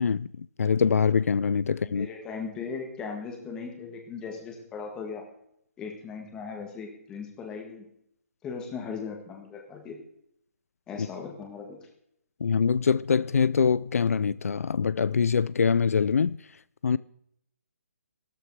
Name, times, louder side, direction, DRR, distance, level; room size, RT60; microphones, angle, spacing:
voice 1, 0.0-2.1 12.4-16.4 16.8-17.0, left 6 dB, 70° left, 0.5 m, -24 dB
voice 2, 1.9-5.2 5.8-7.8 8.4-10.0 10.9-11.8, left 5 dB, 10° left, 1.8 m, -38 dB
15.0 x 13.0 x 4.8 m
hypercardioid pair, 175°, 8 cm